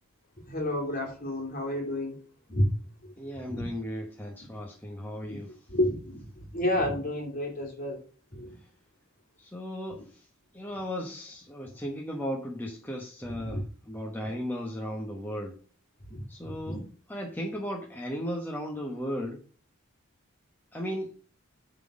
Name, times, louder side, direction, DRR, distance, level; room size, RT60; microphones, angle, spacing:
voice 1, 0.5-2.2 2.5-2.7 3.0-3.1 3.5-3.7 5.7-8.0 8.3-8.5 13.4-13.6 16.1-16.8, left 1 dB, 40° left, 2.7 m, -30 dB
voice 2, 3.2-5.5 9.4-10.2 10.5-15.5 16.3-16.8 17.1-19.4 20.7-21.1, equal, 10° left, 1.1 m, -36 dB
9.1 x 4.0 x 6.2 m
head